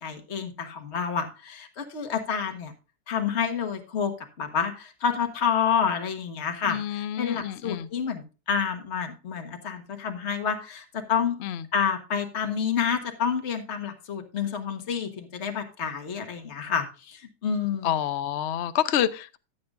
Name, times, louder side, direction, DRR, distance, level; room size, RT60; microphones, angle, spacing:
voice 1, 0.0-2.7 3.1-11.4 11.7-17.9, left 7 dB, 40° left, 1.6 m, -29 dB
voice 2, 6.7-7.9 11.4-11.6 17.8-19.4, left 10 dB, 60° left, 0.7 m, -28 dB
14.0 x 8.7 x 2.5 m
omnidirectional pair, 1.9 m